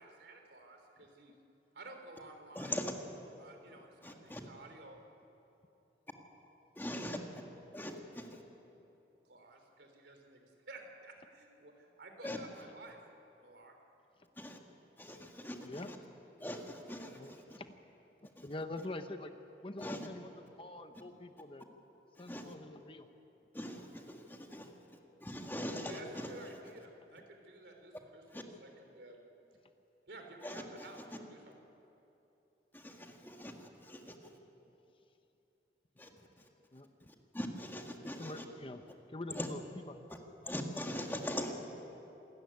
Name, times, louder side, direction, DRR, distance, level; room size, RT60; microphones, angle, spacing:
voice 1, 0.0-1.4 1.7-2.8 3.4-5.0 9.3-13.0 13.4-13.7 25.9-28.7 28.9-29.2 30.1-31.6, right 2 dB, 70° right, 4 dB, 3.5 m, -53 dB
voice 2, 2.5-2.9 4.0-4.4 6.8-7.2 7.7-8.4 12.2-12.4 14.4-14.6 15.0-16.0 16.4-17.6 18.4-18.5 19.8-20.1 22.2-22.5 23.5-24.7 25.2-26.3 28.3-28.4 30.4-30.8 31.1-31.2 32.7-34.1 36.0-36.1 37.1-38.4 39.3-39.5 40.4-41.5, left 1 dB, 10° left, 2 dB, 1.7 m, -42 dB
voice 3, 17.2-17.7 18.4-19.3 19.6-20.3 20.6-21.6 22.2-23.1 36.7-36.9 38.0-38.8 39.1-39.9, left 2 dB, 30° left, 8 dB, 0.9 m, -45 dB
27.0 x 14.0 x 9.6 m, 2.9 s
head